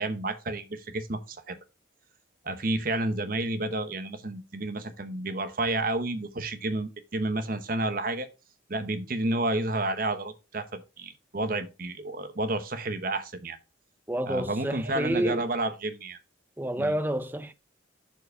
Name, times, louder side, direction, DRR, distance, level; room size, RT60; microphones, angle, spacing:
voice 1, 0.0-1.6 2.4-8.3 8.7-13.6 14.2-16.2 16.8-16.9, right 2 dB, 45° right, 1.0 m, -30 dB
voice 2, 14.1-15.4 16.6-17.5, right 1 dB, 10° right, 0.5 m, -29 dB
6.9 x 4.7 x 5.0 m
head